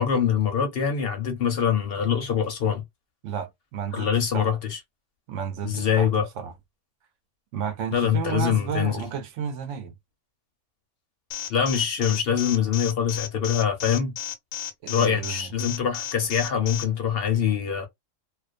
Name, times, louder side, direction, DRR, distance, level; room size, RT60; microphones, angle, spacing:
voice 1, 0.0-2.8 3.9-4.8 5.6-6.3 7.9-9.0 11.5-14.1 14.9-17.9, left 8 dB, 60° left, 0.7 m, -24 dB
voice 2, 3.2-4.5 5.3-6.1 6.4-6.5 7.5-9.9 14.8-15.5, right 7 dB, 75° right, 0.9 m, -32 dB
Alarm, 11.3-16.8, left 10 dB, 85° left, 1.0 m, -33 dB
2.4 x 2.1 x 2.4 m
omnidirectional pair, 1.3 m